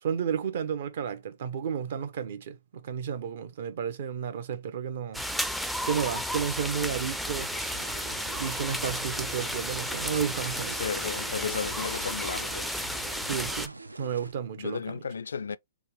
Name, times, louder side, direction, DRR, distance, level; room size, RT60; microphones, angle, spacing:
voice 1, 0.0-5.3 5.8-7.5 8.4-10.8 13.2-13.7 14.0-14.8, right 7 dB, 55° right, 0.9 m, -32 dB
sound 1, 5.1-13.7, equal, ahead, 0.4 m, -33 dB
sound 2, 7.5-14.3, right 2 dB, 85° right, 0.4 m, -45 dB
voice 2, 10.8-12.7 14.6-15.6, left 6 dB, 70° left, 0.3 m, -34 dB
3.5 x 2.9 x 3.0 m
figure-of-eight pair, 120°, 0 cm